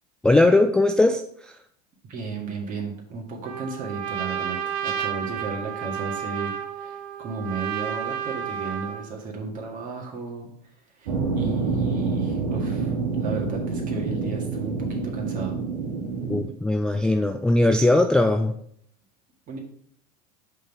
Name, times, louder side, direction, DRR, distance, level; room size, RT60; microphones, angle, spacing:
voice 1, 0.2-1.2 16.3-18.6, left 2 dB, 5° left, 5 dB, 0.3 m, -19 dB
voice 2, 2.1-10.5 11.0-15.5 19.5-19.6, right 4 dB, 40° right, 0 dB, 1.8 m, -34 dB
Trumpet, 3.4-9.1, right 8 dB, 60° right, 0.7 m, -31 dB
sound 1, 11.1-16.4, right 4 dB, 75° right, 1.6 m, -27 dB
5.4 x 3.7 x 5.5 m, 0.65 s
hypercardioid pair, 95°, 21 cm